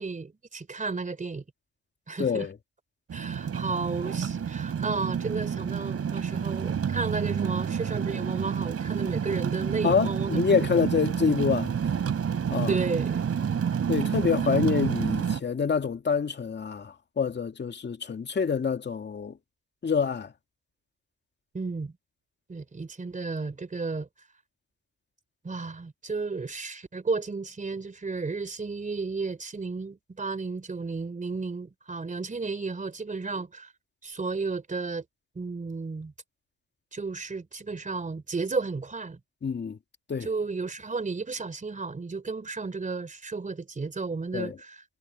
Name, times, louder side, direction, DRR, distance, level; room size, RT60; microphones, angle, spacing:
voice 1, 0.0-1.4 2.1-2.5 3.1-10.8 12.7-13.2 21.5-21.9 22.5-24.1 25.4-33.7 34.0-35.0 35.4-36.1 36.9-39.2 40.2-44.8, right 4 dB, 25° right, 3.4 m, -33 dB
voice 2, 2.2-2.5 9.8-11.7 12.5-12.7 13.9-19.4 19.8-20.3 39.4-39.8 40.1-40.3 44.3-44.6, left 6 dB, 35° left, 2.2 m, -26 dB
sound 1, 3.1-15.4, right 7 dB, 50° right, 5.3 m, -29 dB
cardioid pair, 90°, 30 cm